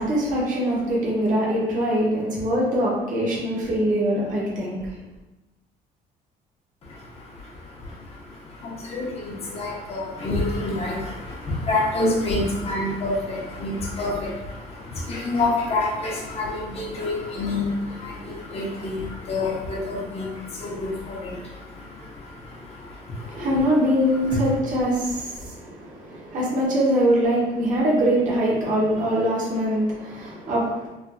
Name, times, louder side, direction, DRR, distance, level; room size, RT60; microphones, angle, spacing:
voice 1, 0.0-4.9 23.2-30.9, equal, 50° right, -5 dB, 1.1 m, -23 dB
voice 2, 6.8-23.5 24.3-24.4, left 2 dB, 35° left, -3 dB, 0.9 m, -28 dB
3.4 x 2.5 x 2.2 m, 1.0 s
cardioid pair, 110°, 17 cm